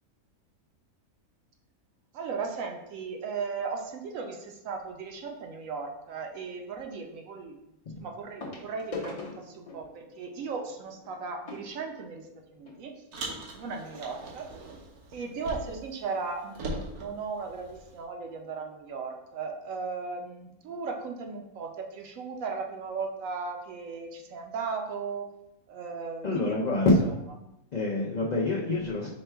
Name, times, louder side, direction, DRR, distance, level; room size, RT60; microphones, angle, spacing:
voice 1, 2.1-7.6 8.0-12.3 12.5-12.9 13.5-14.5 15.1-25.3 25.7-26.9, right 5 dB, 70° right, 3 dB, 1.0 m, -36 dB
sound 1, 4.8-5.1 6.8-6.9 8.4-12.8 13.6-13.7 13.9-14.1 14.6-14.7, left 3 dB, 35° left, 0.7 m, -43 dB
Car, 13.1-15.9 16.2-18.0, right 1 dB, 90° right, 1.3 m, -40 dB
voice 2, 26.2-27.1 27.7-29.1, left 2 dB, 75° left, -3 dB, 0.4 m, -26 dB
5.1 x 2.2 x 4.4 m, 0.87 s
omnidirectional pair, 1.5 m